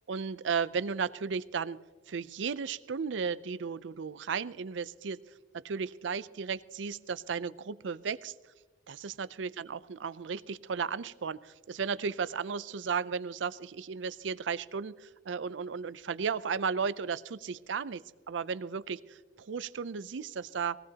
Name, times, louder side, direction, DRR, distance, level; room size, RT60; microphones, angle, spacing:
voice 1, 0.1-1.8 2.1-5.2 5.5-8.3 8.9-18.0 18.3-20.8, right 6 dB, 75° right, 16 dB, 0.5 m, -34 dB
20.0 x 17.5 x 2.9 m, 1.3 s
head